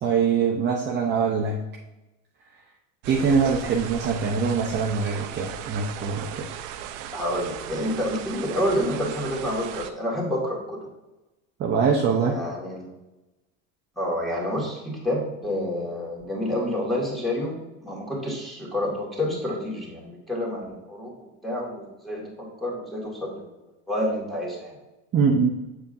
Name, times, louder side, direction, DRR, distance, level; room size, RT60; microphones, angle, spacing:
voice 1, 0.0-1.6 3.1-6.4 11.6-12.3 25.1-25.5, right 5 dB, 30° right, -1 dB, 0.7 m, -23 dB
sound 1, 3.0-9.9, right 9 dB, 85° right, 0.7 m, -37 dB
voice 2, 7.1-10.8 12.3-12.9 14.0-23.5 23.9-24.8, left 1 dB, ahead, -4 dB, 2.0 m, -29 dB
7.1 x 7.0 x 2.6 m, 1.0 s
supercardioid pair, 140°, 37 cm